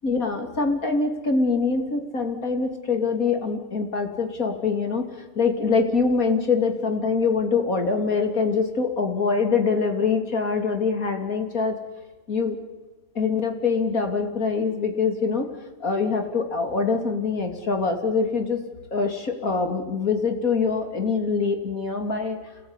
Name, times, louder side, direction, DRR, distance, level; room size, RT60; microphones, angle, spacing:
voice 1, 0.0-5.0 5.3-11.8 12.3-12.6 13.1-15.5 15.8-18.6 18.9-22.4, left 4 dB, 55° left, 5 dB, 3.5 m, -24 dB
28.5 x 19.5 x 9.9 m, 1.3 s
omnidirectional pair, 1.7 m